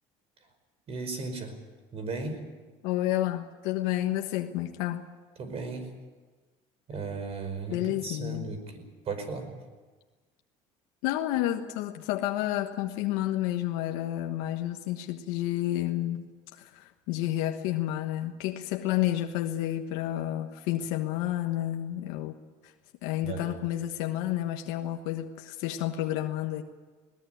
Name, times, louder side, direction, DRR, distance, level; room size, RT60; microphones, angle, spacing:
voice 1, 0.9-1.6 1.9-2.5 5.4-5.9 6.9-9.5 23.2-23.6, right 4 dB, 45° right, 8 dB, 5.2 m, -36 dB
voice 2, 2.8-5.1 7.7-8.5 11.0-22.4 22.6-22.7 23.0-26.6, left 13 dB, 80° left, 4 dB, 1.3 m, -30 dB
20.0 x 19.5 x 9.4 m, 1.4 s
supercardioid pair, 100°, 14 cm